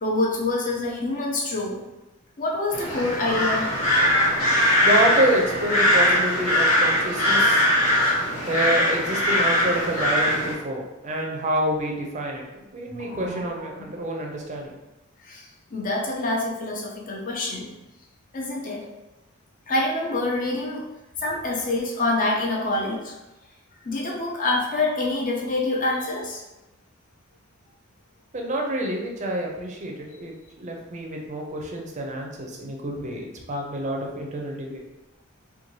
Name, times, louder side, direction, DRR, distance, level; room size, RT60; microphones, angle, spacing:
voice 1, 0.0-1.8 2.4-3.7 12.9-13.7 15.2-15.4 15.7-17.7 18.3-18.8 19.7-20.8 21.2-23.1 23.8-26.4, left 2 dB, 40° left, -1 dB, 0.6 m, -26 dB
sound 1, 2.7-10.5, left 1 dB, 75° left, 1.4 m, -21 dB
voice 2, 4.8-7.7 8.5-14.7 28.3-34.8, right 1 dB, 35° right, 0 dB, 0.5 m, -28 dB
2.6 x 2.2 x 3.0 m, 1.0 s
head